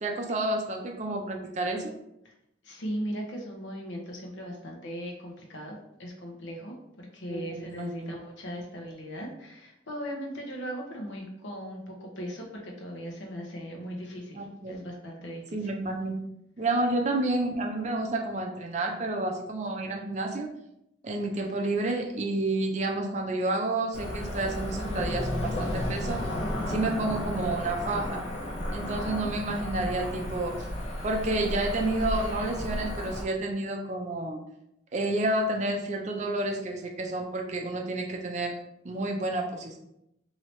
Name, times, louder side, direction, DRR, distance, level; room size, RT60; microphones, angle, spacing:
voice 1, 0.0-2.0 7.3-8.1 14.3-14.7 15.5-16.2 16.6-20.5 21.0-26.2 26.7-28.2 28.7-30.7 31.0-34.4 34.9-38.6 38.8-39.8, right 2 dB, 35° right, 2 dB, 0.4 m, -30 dB
voice 2, 2.6-15.7, equal, 75° left, 0 dB, 0.8 m, -38 dB
Cricket / Motor vehicle (road), 23.9-33.2, left 1 dB, 35° left, 0.6 m, -33 dB
2.9 x 2.7 x 3.1 m, 0.82 s
head